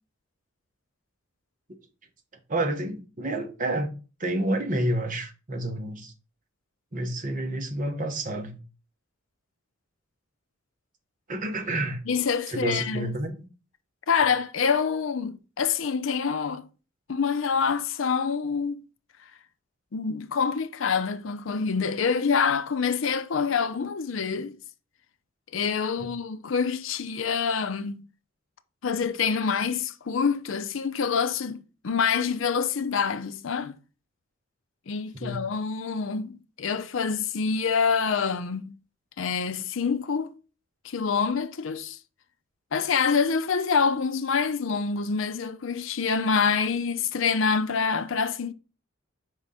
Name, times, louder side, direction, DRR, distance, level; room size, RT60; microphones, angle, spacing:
voice 1, 2.5-3.9 4.2-6.1 6.9-8.6 11.3-12.0 12.5-13.5 35.2-35.4, right 1 dB, 40° right, 1.1 m, -29 dB
voice 2, 12.1-13.1 14.1-16.7 17.1-18.8 19.9-24.6 25.5-28.1 28.8-33.8 34.9-38.8 39.2-40.3 40.8-42.0 42.7-48.5, left 5 dB, 70° left, 0.5 m, -26 dB
5.2 x 3.7 x 5.5 m
head